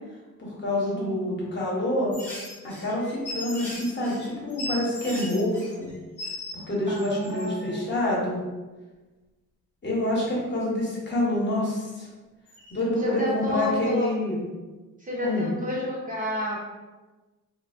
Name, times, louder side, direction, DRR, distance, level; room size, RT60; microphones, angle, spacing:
voice 1, 0.4-2.1 2.6-5.9 6.5-8.4 9.8-12.1 12.7-14.5 15.2-15.5, left 1 dB, 35° left, -5 dB, 0.9 m, -27 dB
sound 1, 2.1-6.6 6.9-7.8 12.5-12.7, left 1 dB, 5° left, 0.7 m, -38 dB
voice 2, 6.9-7.9 13.0-14.1 15.0-16.6, left 1 dB, 25° right, -5 dB, 0.5 m, -30 dB
3.4 x 2.5 x 2.4 m, 1.2 s
wide cardioid pair, 155°, 32 cm